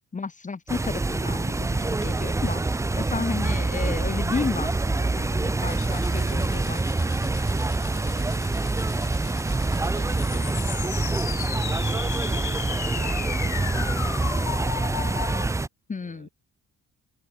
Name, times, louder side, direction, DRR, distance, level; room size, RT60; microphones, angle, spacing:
voice 1, 0.1-2.6 2.9-6.8 15.9-16.3, left 4 dB, 25° left, 1.3 m, -32 dB
sound 1, 0.7-15.7, right 3 dB, 10° right, 0.5 m, -26 dB
voice 2, 2.0-2.4 7.9-15.1 16.0-16.3, right 12 dB, 75° right, 5.2 m, -50 dB
sound 2, 5.7-15.4, left 15 dB, 70° left, 0.7 m, -37 dB
cardioid pair, 90°, 30 cm